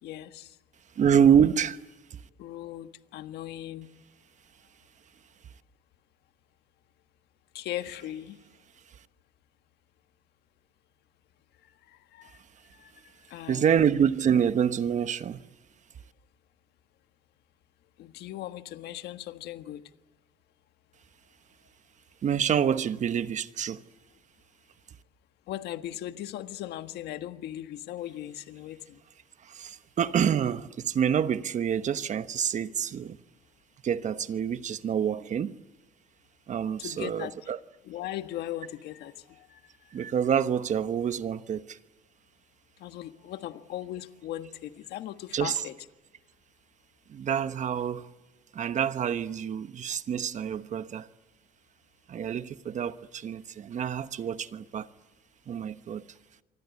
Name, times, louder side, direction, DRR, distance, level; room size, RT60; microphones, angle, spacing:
voice 1, 0.0-0.6 2.4-3.9 7.5-8.4 11.6-12.4 12.7-13.8 18.0-19.8 25.5-29.0 36.8-37.5 37.8-40.0 42.8-45.7, left 13 dB, 75° left, 1.5 m, -39 dB
voice 2, 1.0-1.8 13.5-15.4 22.2-23.8 29.5-33.2 33.8-35.6 36.5-37.6 39.9-41.7 45.3-45.6 47.1-48.0 48.5-51.1 52.1-54.9 55.5-56.0, right 8 dB, 45° right, 1.2 m, -27 dB
28.0 x 25.0 x 8.3 m
cardioid pair, 110°, 17 cm